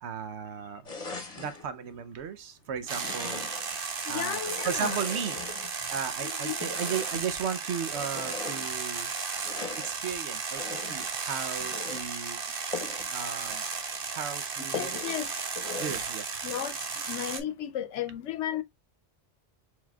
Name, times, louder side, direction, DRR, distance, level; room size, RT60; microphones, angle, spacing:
voice 1, 0.0-0.8 1.4-3.5 4.1-5.4 5.9-9.1 9.8-12.4 13.1-13.6 14.1-15.1 15.8-16.4, right 7 dB, 75° right, 1.0 m, -35 dB
sound 1, 0.8-1.7 2.8-3.8 4.3-6.0 6.6-7.3 7.8-8.7 9.4-10.0 10.5-11.1 11.6-12.1 12.7-13.1 13.5-13.6 13.9-14.0 14.7-15.2 15.6-16.1, left 4 dB, 35° left, 1.0 m, -40 dB
sound 2, 2.9-17.4, right 5 dB, 55° right, 1.0 m, -34 dB
voice 2, 4.1-5.0 6.2-6.6 14.7-15.4 16.4-16.8 17.1-18.6, left 11 dB, 90° left, 0.9 m, -34 dB
4.5 x 3.9 x 2.3 m
omnidirectional pair, 1.2 m